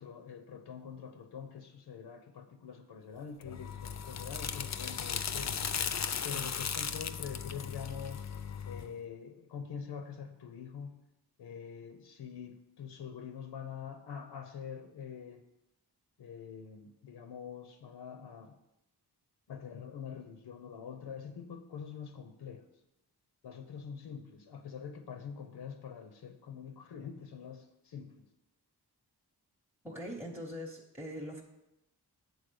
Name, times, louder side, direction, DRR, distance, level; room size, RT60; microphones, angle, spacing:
voice 1, 0.0-5.6 6.2-8.2 8.6-11.0 11.4-15.4 16.2-18.6 19.5-22.7 23.4-28.3, left 7 dB, 90° left, 8 dB, 0.7 m, -45 dB
sound 1, 3.4-8.9, left 7 dB, 45° left, 0.4 m, -37 dB
voice 2, 29.8-31.4, equal, 5° right, -2 dB, 0.7 m, -42 dB
8.0 x 4.0 x 6.7 m, 0.90 s
wide cardioid pair, 120°, 40 cm